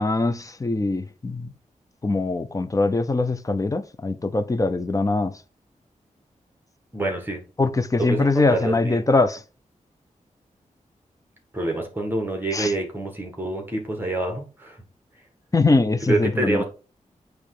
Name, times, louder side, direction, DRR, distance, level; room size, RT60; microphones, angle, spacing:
voice 1, 0.0-1.5 2.0-5.3 7.6-9.4 12.5-12.7 15.5-16.6, left 3 dB, 25° left, 0.6 m, -22 dB
voice 2, 6.9-7.4 8.0-9.0 11.5-14.8 16.0-16.6, right 2 dB, 15° right, 1.7 m, -27 dB
8.6 x 3.2 x 4.9 m
wide cardioid pair, 105°, 14 cm